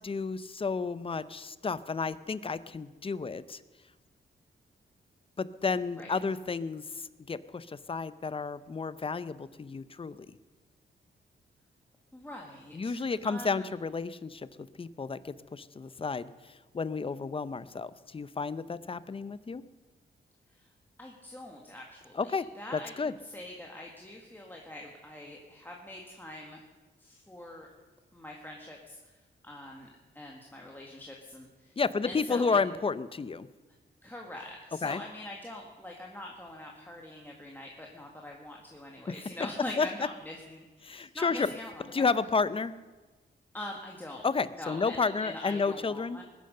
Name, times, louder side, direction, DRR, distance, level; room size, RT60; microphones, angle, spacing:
voice 1, 0.0-3.6 5.4-6.8 7.3-10.4 12.7-14.5 14.8-16.3 16.7-19.6 22.2-22.5 22.7-23.1 31.8-33.5 34.8-35.0 39.8-39.9 40.8-41.5 41.9-42.7 44.2-46.2, left 4 dB, 25° left, 16 dB, 0.6 m, -31 dB
voice 2, 12.1-13.7 20.5-20.7 21.0-26.6 27.0-27.7 28.1-29.9 30.1-31.8 32.0-32.6 34.0-42.2 43.5-44.3 44.5-46.2, left 1 dB, 10° left, -1 dB, 1.6 m, -44 dB
20.0 x 10.5 x 6.6 m, 1.2 s
wide cardioid pair, 130°, 20 cm